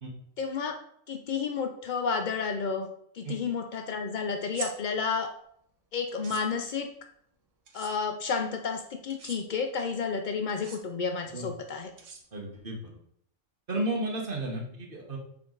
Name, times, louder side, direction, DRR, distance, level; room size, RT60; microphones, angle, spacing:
voice 1, 0.4-0.8 1.1-5.3 5.9-6.9 7.7-11.9, left 5 dB, 80° left, 5 dB, 0.4 m, -31 dB
sound 1, 4.4-4.7 6.1-6.4 7.7-7.9 9.1-9.4 10.5-10.8 12.0-12.6, right 5 dB, 65° right, 1.3 m, -42 dB
voice 2, 12.3-12.8 13.7-15.2, right 1 dB, 40° right, 0 dB, 1.4 m, -33 dB
6.1 x 4.5 x 3.8 m, 0.69 s
omnidirectional pair, 1.4 m